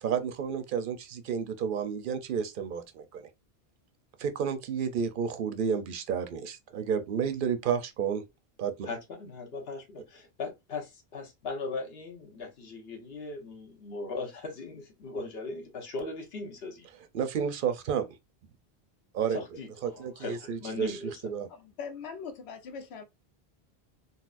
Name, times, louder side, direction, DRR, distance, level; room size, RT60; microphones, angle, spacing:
voice 1, 0.0-3.3 4.2-8.2 8.6-8.9 17.1-18.1 19.1-19.4 19.8-21.0 21.2-21.5, right 7 dB, 60° right, 0.6 m, -31 dB
voice 2, 8.8-16.9 19.3-21.2, left 3 dB, 75° left, 1.2 m, -39 dB
voice 3, 21.5-23.0, left 6 dB, 90° left, 1.0 m, -41 dB
4.0 x 2.1 x 2.4 m
omnidirectional pair, 1.1 m